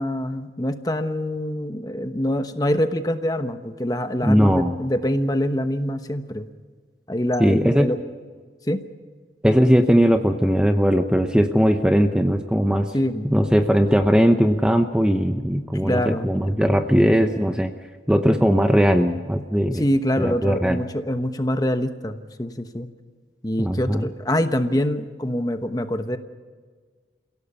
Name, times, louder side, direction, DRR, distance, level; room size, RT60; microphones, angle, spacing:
voice 1, 0.0-6.5 7.1-8.0 8.7-8.8 12.9-13.3 15.8-16.3 19.7-22.9 23.4-26.2, equal, 20° left, 8 dB, 1.0 m, -25 dB
voice 2, 4.2-4.7 7.4-7.9 9.4-12.9 13.2-17.7 18.1-19.8 20.2-20.8 23.6-24.1, equal, 5° right, 6 dB, 0.7 m, -19 dB
28.5 x 17.0 x 5.6 m, 1.5 s
head